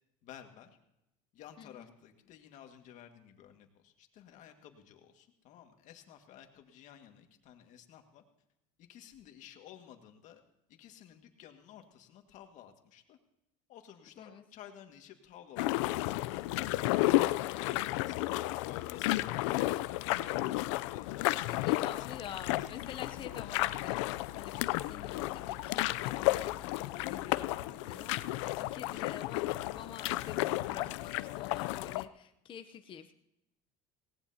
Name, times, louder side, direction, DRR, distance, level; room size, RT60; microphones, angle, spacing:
voice 1, 0.2-0.7 1.3-8.2 8.8-10.4 10.7-13.2 13.7-17.0 17.6-22.3 22.6-22.7 27.5-27.8 28.5-29.1, left 10 dB, 55° left, 5 dB, 1.9 m, -54 dB
voice 2, 1.6-1.9 14.2-14.4 21.2-33.1, left 9 dB, 35° left, 7 dB, 0.7 m, -48 dB
sound 1, 15.6-32.0, left 18 dB, 90° left, 0.5 m, -32 dB
sound 2, 20.8-31.0, right 2 dB, 55° right, 4.9 m, -61 dB
19.0 x 18.0 x 2.8 m, 0.85 s
cardioid pair, 125°, 15 cm